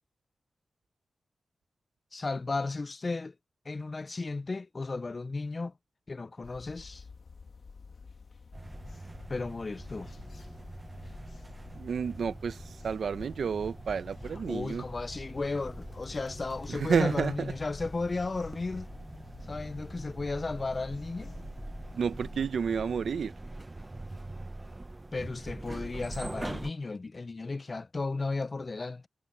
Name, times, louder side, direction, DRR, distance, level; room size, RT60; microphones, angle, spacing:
voice 1, 2.1-3.3 3.7-5.7 6.1-7.0 9.3-10.1 14.2-18.9 19.5-21.4 25.1-29.1, left 3 dB, 35° left, 0.4 m, -34 dB
sound 1, 6.4-22.4, left 4 dB, 60° left, 1.6 m, -49 dB
sound 2, 8.5-26.7, right 2 dB, 20° right, 0.7 m, -44 dB
voice 2, 11.8-12.6 12.8-14.8 16.7-17.5 21.9-23.3, right 6 dB, 80° right, 0.7 m, -30 dB
wide cardioid pair, 105°, 0 cm